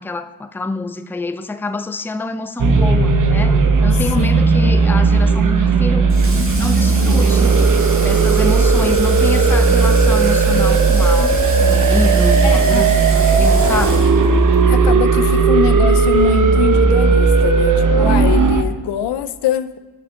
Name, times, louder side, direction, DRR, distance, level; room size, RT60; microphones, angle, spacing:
voice 1, 0.0-6.1 6.6-7.6 8.0-14.0, left 3 dB, 5° left, 11 dB, 0.4 m, -26 dB
sound 1, 2.6-18.6, right 4 dB, 50° right, 0.8 m, -14 dB
Water / Water tap faucet, 6.1-14.6, right 2 dB, 30° right, 2.3 m, -31 dB
voice 2, 12.4-13.0 14.6-19.8, left 9 dB, 90° left, 13 dB, 0.5 m, -22 dB
6.3 x 5.7 x 5.5 m, 1.3 s
cardioid pair, 60°, 40 cm